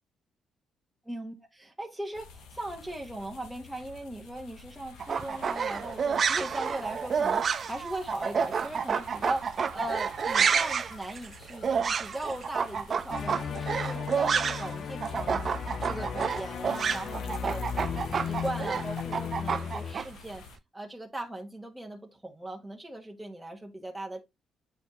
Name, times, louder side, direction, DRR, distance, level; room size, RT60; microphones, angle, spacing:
voice 1, 1.0-17.6 17.9-20.4 20.7-24.2, right 1 dB, 5° right, 1.4 m, -38 dB
sound 1, 2.1-20.6, left 5 dB, 90° left, 1.1 m, -50 dB
sound 2, 5.0-14.8 15.0-20.0, right 6 dB, 50° right, 0.4 m, -29 dB
sound 3, 13.1-19.9, left 7 dB, 60° left, 0.6 m, -36 dB
8.0 x 4.3 x 3.0 m
cardioid pair, 90°, 0 cm